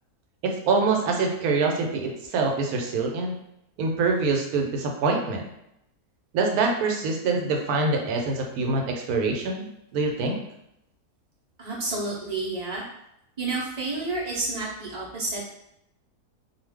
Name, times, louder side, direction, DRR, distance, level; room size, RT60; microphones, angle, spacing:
voice 1, 0.4-3.3 3.8-5.4 6.3-9.7 9.9-10.4, right 3 dB, 80° right, 2 dB, 1.1 m, -25 dB
voice 2, 11.6-12.8 13.4-15.4, right 3 dB, 45° right, -5 dB, 0.5 m, -30 dB
2.4 x 2.3 x 3.3 m, 0.81 s
omnidirectional pair, 1.6 m